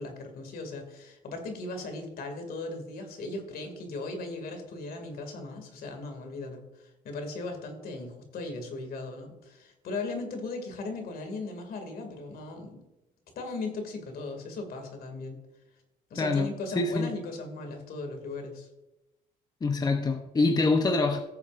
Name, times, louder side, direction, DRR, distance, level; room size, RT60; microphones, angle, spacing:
voice 1, 0.0-12.8 13.4-15.4 16.1-18.7, left 3 dB, 60° left, 5 dB, 2.4 m, -38 dB
voice 2, 16.2-16.5 16.7-17.1 19.6-21.2, left 3 dB, 25° left, 5 dB, 0.8 m, -25 dB
17.0 x 7.2 x 2.5 m, 0.99 s
cardioid pair, 110°, 17 cm